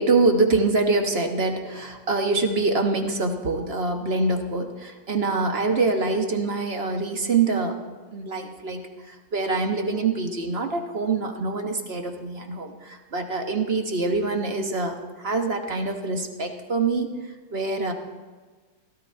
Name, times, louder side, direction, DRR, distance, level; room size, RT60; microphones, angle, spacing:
voice 1, 0.0-7.8 8.1-17.1 17.5-17.9, right 3 dB, 40° right, 4 dB, 1.2 m, -25 dB
16.5 x 13.0 x 4.3 m, 1.4 s
omnidirectional pair, 2.1 m